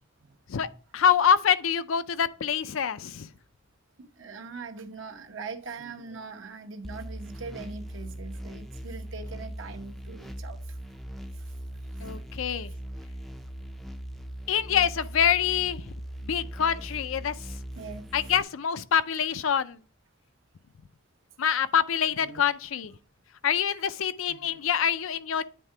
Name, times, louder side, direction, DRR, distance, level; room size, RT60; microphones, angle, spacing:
voice 1, 0.9-3.3 12.0-12.7 14.5-15.8 16.2-17.3 18.1-19.8 21.4-22.9 23.4-25.4, left 8 dB, 85° left, 0.5 m, -25 dB
voice 2, 4.0-10.8 11.3-11.5 12.0-12.2 15.5-15.6 17.7-18.3 22.1-22.5 24.3-24.6, right 4 dB, 75° right, 0.9 m, -42 dB
sound 1, 6.8-18.4, equal, ahead, 0.4 m, -40 dB
9.2 x 3.7 x 4.4 m
head